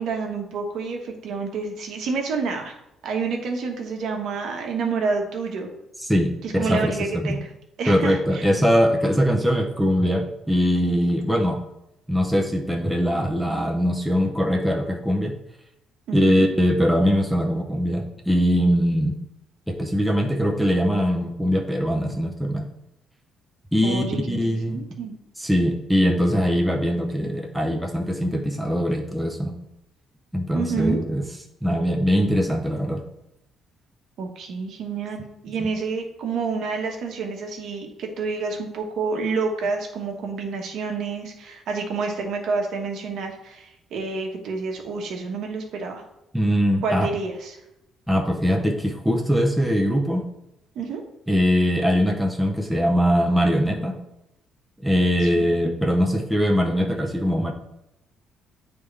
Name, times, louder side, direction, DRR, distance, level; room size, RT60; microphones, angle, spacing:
voice 1, 0.0-2.8 3.0-5.7 6.4-7.5 7.8-8.5 16.1-16.5 23.8-25.1 30.5-31.0 34.2-46.0 46.8-47.6 50.7-51.0 55.2-55.5, right 4 dB, 60° right, 2 dB, 1.1 m, -28 dB
voice 2, 6.0-6.3 6.6-7.4 7.9-11.6 12.1-15.4 16.1-19.2 19.7-22.7 23.7-24.8 25.4-29.6 30.3-31.2 31.6-33.0 35.6-35.7 46.3-47.1 48.1-50.2 51.3-54.0 54.8-57.5, equal, ahead, 1 dB, 0.6 m, -22 dB
9.4 x 3.5 x 3.3 m, 0.85 s
cardioid pair, 170°, 0 cm